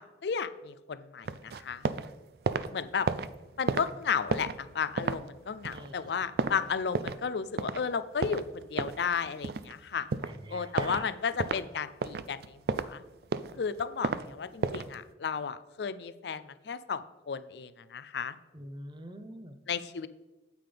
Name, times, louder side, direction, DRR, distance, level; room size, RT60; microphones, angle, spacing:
voice 1, 0.0-1.8 2.7-3.1 3.6-10.1 10.5-13.0 13.6-18.4 19.7-20.1, left 6 dB, 65° left, 14 dB, 0.4 m, -34 dB
sound 1, 1.2-2.1 2.3-7.3 7.6-7.8 8.2-9.8 10.1-10.4 10.8-11.0 11.4-11.6 12.0-12.9 13.2-14.2 14.6-14.9, right 4 dB, 55° right, 0.4 m, -32 dB
voice 2, 5.7-6.1 10.2-11.1 18.5-19.6, right 1 dB, 25° right, 8 dB, 0.7 m, -45 dB
9.2 x 8.6 x 3.4 m, 1.1 s
head